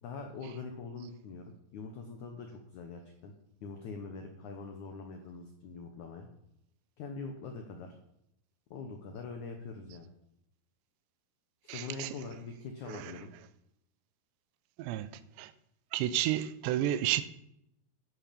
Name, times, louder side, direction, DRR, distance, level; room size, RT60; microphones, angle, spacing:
voice 1, 0.0-1.4 1.7-3.3 3.6-6.3 7.0-7.9 8.7-10.1 11.7-13.3, left 4 dB, 85° left, 1.7 m, -43 dB
voice 2, 11.7-12.1 12.9-13.1 14.8-15.5 15.9-17.2, right 12 dB, 80° right, 2.8 m, -32 dB
11.0 x 10.5 x 5.3 m
omnidirectional pair, 5.1 m